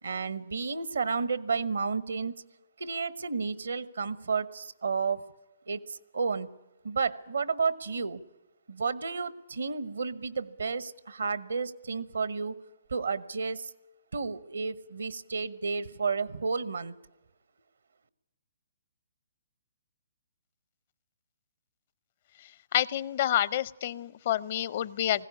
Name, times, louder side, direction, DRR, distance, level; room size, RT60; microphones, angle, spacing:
voice 1, 0.0-2.4 2.8-5.2 5.7-6.5 6.8-8.2 8.7-12.6 12.9-13.7 14.1-16.9, right 5 dB, 75° right, 17 dB, 1.1 m, -31 dB
voice 2, 22.7-25.3, left 11 dB, 50° left, 20 dB, 0.6 m, -28 dB
20.0 x 16.0 x 9.8 m, 1.0 s
figure-of-eight pair, 130°, 0 cm